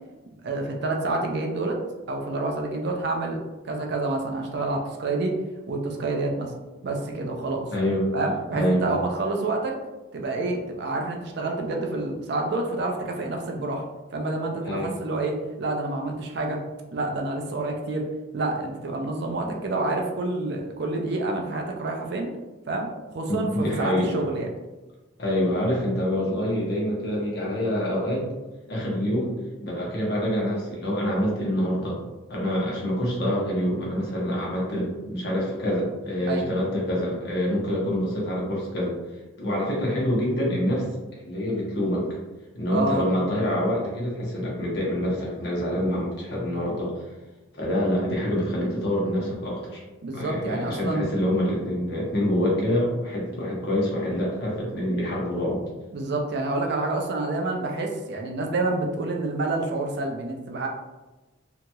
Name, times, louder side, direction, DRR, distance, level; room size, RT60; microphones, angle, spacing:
voice 1, 0.4-1.8 2.1-5.4 5.7-6.5 6.8-7.7 8.1-9.7 10.1-13.8 14.1-16.6 16.9-18.0 18.3-22.3 22.7-24.5 36.3-36.5 42.7-43.1 50.0-51.1 55.9-60.7, right 2 dB, 55° right, 2 dB, 0.4 m, -28 dB
voice 2, 7.7-8.1 8.5-8.8 14.6-14.9 19.5-19.6 23.3-24.2 25.2-28.3 28.7-29.3 29.6-32.0 32.3-38.9 39.4-40.8 41.1-42.1 42.5-47.0 47.5-49.8 50.1-55.6, equal, 55° left, -4 dB, 0.9 m, -26 dB
2.8 x 2.8 x 2.3 m, 1.1 s
head